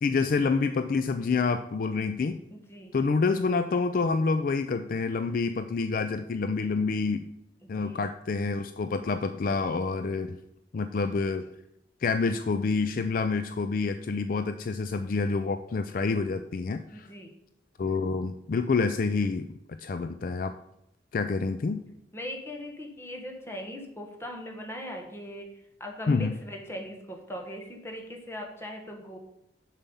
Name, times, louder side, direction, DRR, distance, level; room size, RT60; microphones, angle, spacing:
voice 1, 0.0-2.4 2.9-7.3 7.7-10.4 10.7-11.5 12.0-17.1 17.8-19.5 19.8-20.5 21.1-21.8 26.1-26.4, left 4 dB, 50° left, 9 dB, 0.4 m, -27 dB
voice 2, 2.5-3.0 7.6-8.0 16.9-17.3 22.1-29.2, equal, 15° left, 2 dB, 1.3 m, -40 dB
7.1 x 5.6 x 5.4 m, 0.82 s
head